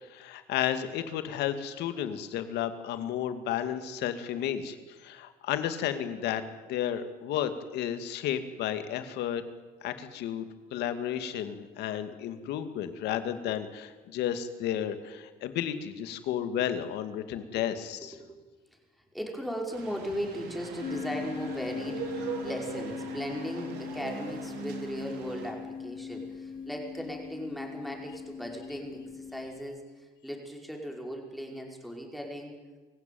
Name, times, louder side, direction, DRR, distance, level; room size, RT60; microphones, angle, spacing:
voice 1, 0.0-6.4 6.7-9.4 9.8-18.2, left 10 dB, 80° left, 9 dB, 2.3 m, -32 dB
voice 2, 19.1-29.8 30.2-32.6, equal, ahead, 1 dB, 5.1 m, -37 dB
sound 1, 19.7-25.5, right 6 dB, 80° right, 3.8 m, -41 dB
Tuning Fork and Ukulele, 20.8-29.6, left 6 dB, 55° left, 2.9 m, -40 dB
24.5 x 16.0 x 9.3 m, 1.3 s
cardioid pair, 110°, 17 cm